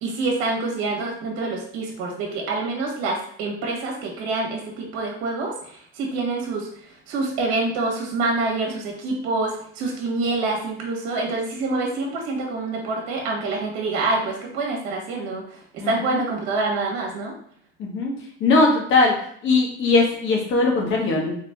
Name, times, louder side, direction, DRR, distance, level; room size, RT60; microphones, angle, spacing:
voice 1, 0.0-6.7 7.1-15.6 15.8-17.3, right 3 dB, 55° right, 0 dB, 1.4 m, -26 dB
voice 2, 15.8-16.2 17.8-18.1 18.4-19.1 19.4-21.3, left 3 dB, 40° left, 0 dB, 1.3 m, -20 dB
3.6 x 3.2 x 3.5 m, 0.63 s
supercardioid pair, 120°, 32 cm